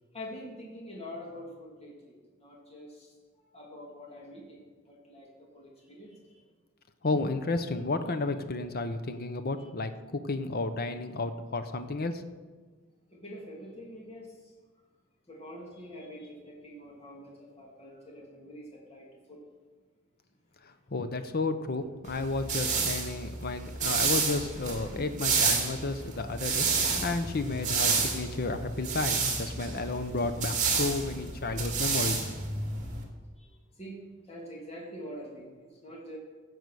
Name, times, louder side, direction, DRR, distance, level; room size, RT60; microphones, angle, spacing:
voice 1, 0.1-6.4 9.6-9.7 13.1-14.5 15.3-19.4 33.4-36.2, equal, 30° left, -2 dB, 2.6 m, -46 dB
voice 2, 7.0-12.2 20.6-32.3, left 3 dB, 50° left, 9 dB, 0.8 m, -32 dB
sound 1, 22.1-33.0, right 5 dB, 35° right, 2.6 m, -30 dB
16.0 x 8.1 x 6.3 m, 1.4 s
head